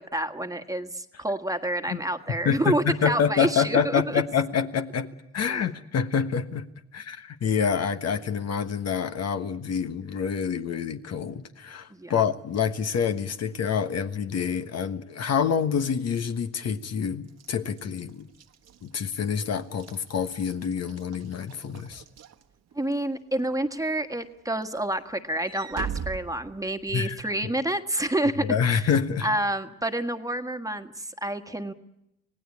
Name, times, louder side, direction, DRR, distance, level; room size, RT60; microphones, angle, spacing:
voice 1, 0.0-4.2 5.4-5.6 11.9-12.1 22.7-28.8 29.2-31.7, right 1 dB, 10° right, 7 dB, 1.6 m, -28 dB
voice 2, 2.4-6.7 6.9-18.3 18.8-22.0 26.9-27.2 28.4-29.3, left 7 dB, 55° left, 9 dB, 1.4 m, -27 dB
Walk footsteps / Slam, 17.3-23.0 23.5-23.8 24.1-27.1, right 7 dB, 60° right, 1.4 m, -41 dB
26.0 x 18.0 x 8.6 m, 0.86 s
cardioid pair, 90°, 30 cm